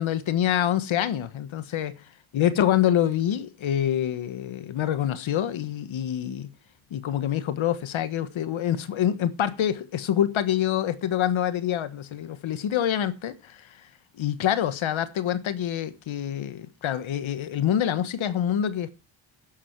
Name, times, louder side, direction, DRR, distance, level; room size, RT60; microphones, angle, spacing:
voice 1, 0.0-2.0 2.3-6.5 6.9-13.8 14.2-18.9, left 10 dB, 70° left, 1.4 m, -26 dB
12.0 x 9.4 x 4.6 m
cardioid pair, 105°, 49 cm